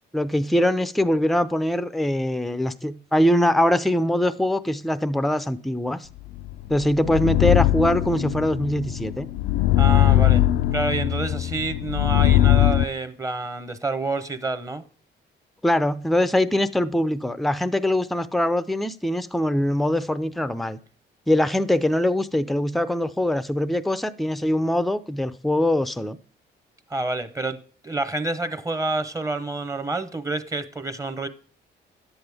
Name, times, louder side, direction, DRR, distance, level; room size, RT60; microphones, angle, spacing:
voice 1, 0.1-6.1 6.7-9.3 15.6-20.8 21.3-26.2, left 1 dB, ahead, 0.5 m, -22 dB
sound 1, 6.4-12.8, left 13 dB, 85° left, 0.5 m, -20 dB
voice 2, 9.8-10.4 10.7-14.8 26.9-27.6 27.8-31.3, right 2 dB, 15° right, 0.9 m, -28 dB
10.5 x 7.9 x 3.5 m
cardioid pair, 90°, 20 cm